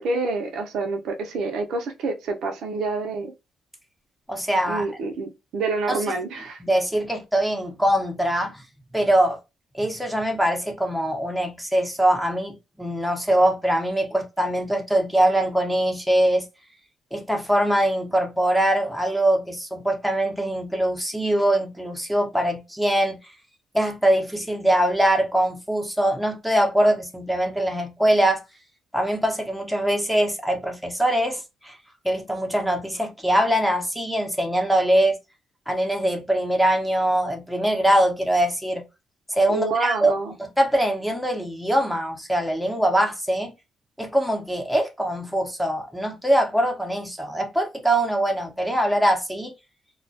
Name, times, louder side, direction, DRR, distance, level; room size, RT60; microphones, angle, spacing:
voice 1, 0.0-3.3 4.7-6.6 39.5-40.3, right 3 dB, 75° right, 0.6 m, -27 dB
voice 2, 4.3-4.9 5.9-6.0 6.6-8.6 8.9-9.4 9.7-16.5 17.1-23.2 23.7-28.4 28.9-31.8 32.0-35.2 35.7-38.8 39.3-40.1 40.4-43.5 44.0-49.5, right 1 dB, ahead, 0.7 m, -22 dB
2.2 x 2.1 x 2.6 m
cardioid pair, 90°, 0 cm